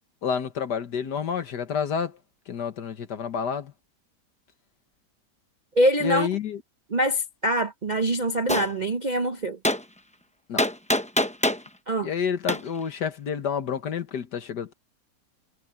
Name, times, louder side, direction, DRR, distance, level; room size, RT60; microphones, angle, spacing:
voice 1, 0.2-2.2 2.5-3.7 6.0-6.6 10.5-10.6 12.0-14.7, left 7 dB, 80° left, 2.0 m, -29 dB
voice 2, 5.8-6.3 6.9-9.6 11.9-12.1, right 1 dB, 40° right, 0.7 m, -24 dB
Gunshot gunfire, 8.5-8.7 9.6-9.8 10.6-11.7 12.5-12.6, left 1 dB, 10° left, 0.3 m, -23 dB
omnidirectional pair, 1.8 m